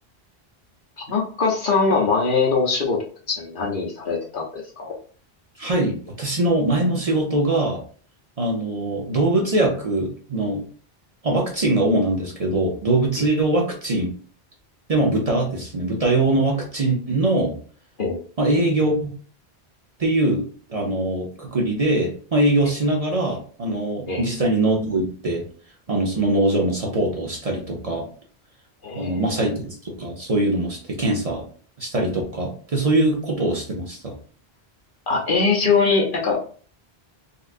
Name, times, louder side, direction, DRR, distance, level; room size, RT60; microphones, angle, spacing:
voice 1, 1.0-4.9 18.0-18.2 24.1-24.2 28.8-29.4 35.1-36.4, left 4 dB, 55° left, -1 dB, 0.9 m, -22 dB
voice 2, 5.6-7.8 8.4-10.6 11.2-14.1 14.9-17.6 18.4-19.1 20.0-20.4 20.7-25.4 25.9-28.1 29.0-31.4 31.8-34.1, right 2 dB, 40° right, -1 dB, 0.8 m, -22 dB
4.0 x 2.4 x 2.5 m, 0.43 s
omnidirectional pair, 1.1 m